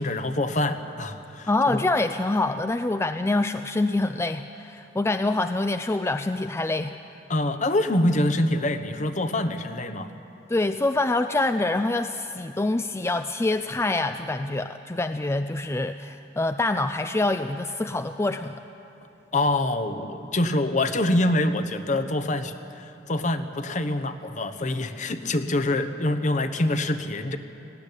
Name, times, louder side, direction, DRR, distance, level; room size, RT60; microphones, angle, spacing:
voice 1, 0.0-1.9 7.3-10.1 19.3-27.4, left 1 dB, 45° left, 9 dB, 1.1 m, -25 dB
voice 2, 1.5-7.0 10.5-18.6, left 2 dB, 15° left, 9 dB, 0.4 m, -25 dB
19.0 x 15.0 x 10.0 m, 2.8 s
head